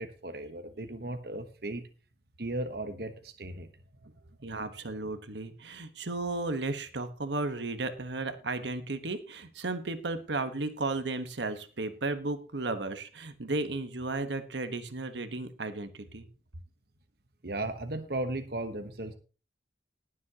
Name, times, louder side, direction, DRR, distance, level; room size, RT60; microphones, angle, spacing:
voice 1, 0.0-1.8 2.4-3.7 17.4-19.1, right 2 dB, 60° right, 7 dB, 1.2 m, -36 dB
voice 2, 4.4-16.3, right 2 dB, 85° right, 9 dB, 1.3 m, -34 dB
20.0 x 7.4 x 3.0 m, 0.34 s
head